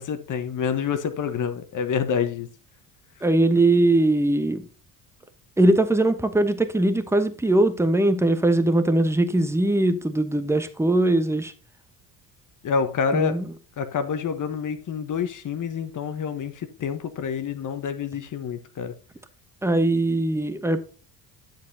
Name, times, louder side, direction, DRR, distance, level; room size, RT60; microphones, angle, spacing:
voice 1, 0.0-2.5 12.6-13.4 13.8-18.9, left 6 dB, 40° left, 1.2 m, -27 dB
voice 2, 3.2-4.6 5.6-11.5 13.1-13.4 19.6-20.8, right 2 dB, 5° right, 1.0 m, -21 dB
10.5 x 7.3 x 2.8 m
figure-of-eight pair, 55°, 50 cm